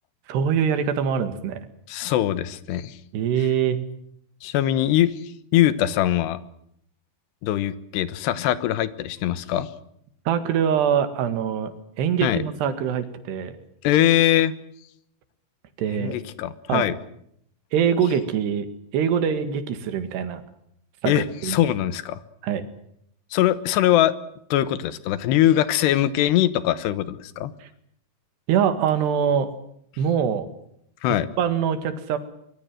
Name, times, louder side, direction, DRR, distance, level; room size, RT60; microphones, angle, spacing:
voice 1, 0.3-1.6 3.1-3.8 10.3-11.7 12.0-13.6 15.8-16.2 16.7-16.9 17.7-18.7 18.9-20.4 21.0-21.6 22.4-22.7 28.5-29.5 30.0-30.5 31.4-32.2, right 8 dB, 80° right, 10 dB, 4.0 m, -23 dB
voice 2, 1.9-3.0 4.4-6.4 7.4-9.7 12.2-12.4 13.8-14.5 15.9-17.0 21.1-22.2 23.3-24.1 24.5-27.5 31.0-31.3, left 12 dB, 85° left, 15 dB, 3.3 m, -22 dB
24.0 x 22.0 x 7.7 m, 0.71 s
omnidirectional pair, 4.7 m